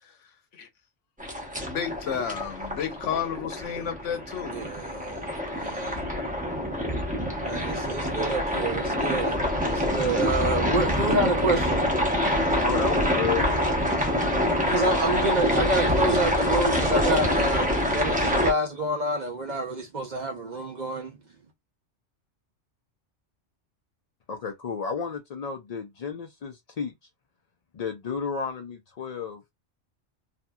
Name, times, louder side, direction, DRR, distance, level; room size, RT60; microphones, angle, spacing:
sound 1, 1.2-18.5, equal, 10° right, 0.7 m, -26 dB
voice 1, 1.6-4.6, left 8 dB, 80° left, 1.1 m, -31 dB
voice 2, 4.4-6.0 7.4-9.4 9.7-11.8 14.7-21.1, right 2 dB, 45° right, 0.6 m, -28 dB
voice 3, 12.6-13.5 24.3-26.9 27.7-29.4, left 6 dB, 65° left, 0.4 m, -32 dB
2.8 x 2.5 x 2.2 m
omnidirectional pair, 1.2 m